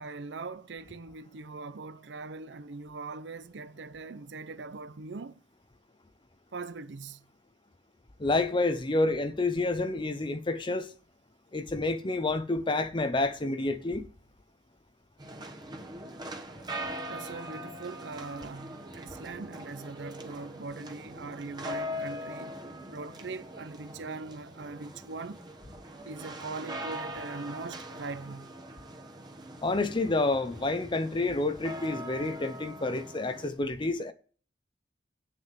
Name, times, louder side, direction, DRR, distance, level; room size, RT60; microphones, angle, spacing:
voice 1, 0.0-5.4 6.5-7.3 17.1-22.6 22.9-25.4 26.0-28.6, right 3 dB, 70° right, 0.6 m, -41 dB
voice 2, 8.2-10.9 11.5-14.0 29.6-34.1, left 2 dB, 25° left, 0.7 m, -29 dB
sound 1, 15.2-33.5, equal, 25° right, 1.2 m, -42 dB
9.2 x 6.5 x 7.3 m
head